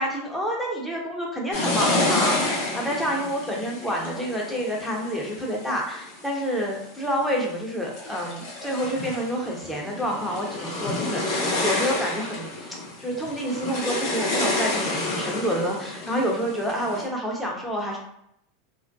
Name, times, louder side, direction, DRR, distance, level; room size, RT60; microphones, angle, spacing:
voice 1, 0.0-18.0, equal, 5° left, -2 dB, 0.8 m, -28 dB
sound 1, 1.5-6.3 6.9-7.4 7.8-17.1, left 2 dB, 60° left, 0.8 m, -29 dB
2.3 x 2.1 x 2.6 m, 0.74 s
hypercardioid pair, 95°, 0 cm